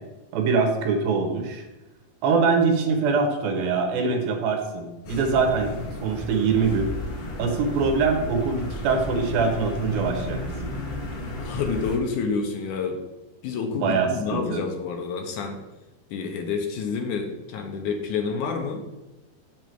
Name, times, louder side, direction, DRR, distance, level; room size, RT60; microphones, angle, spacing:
voice 1, 0.3-1.7 2.2-6.9 7.4-10.7 13.8-14.6, right 4 dB, 75° right, 4 dB, 2.9 m, -23 dB
sound 1, 5.0-12.0, left 2 dB, 55° left, 1.6 m, -33 dB
voice 2, 11.4-13.0 13.4-15.6 16.1-18.8, left 5 dB, 75° left, 3 dB, 1.9 m, -28 dB
7.2 x 6.7 x 4.6 m, 1.0 s
omnidirectional pair, 4.3 m